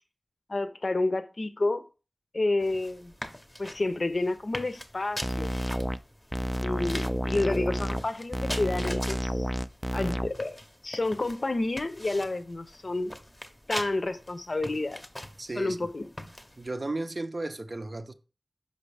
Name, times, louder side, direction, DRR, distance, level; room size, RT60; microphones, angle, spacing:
voice 1, 0.5-1.8 2.3-3.1 3.6-5.5 6.6-9.5 9.9-13.1 13.7-15.0 15.6-16.0, left 2 dB, 55° left, 0.5 m, -30 dB
sound 1, 2.6-16.7, left 1 dB, 15° left, 0.7 m, -43 dB
sound 2, 5.2-6.0 6.3-8.0 8.3-10.3, equal, 5° right, 0.3 m, -30 dB
voice 2, 15.4-15.8 16.6-18.1, right 2 dB, 50° right, 0.6 m, -34 dB
5.4 x 5.2 x 3.3 m
wide cardioid pair, 60°, 0 cm